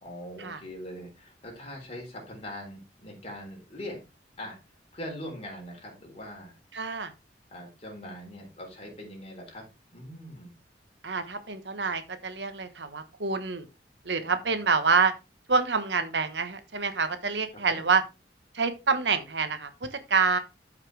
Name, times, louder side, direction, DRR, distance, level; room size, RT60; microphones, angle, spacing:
voice 1, 0.0-4.0 4.4-4.6 4.9-6.6 7.5-9.6 9.9-10.6 14.2-14.5 17.5-17.9, left 1 dB, 35° left, 4.1 m, -42 dB
voice 2, 6.7-7.1 11.0-13.6 14.0-15.1 15.5-18.0 18.5-20.4, right 5 dB, 80° right, 1.3 m, -27 dB
13.0 x 5.7 x 3.3 m
head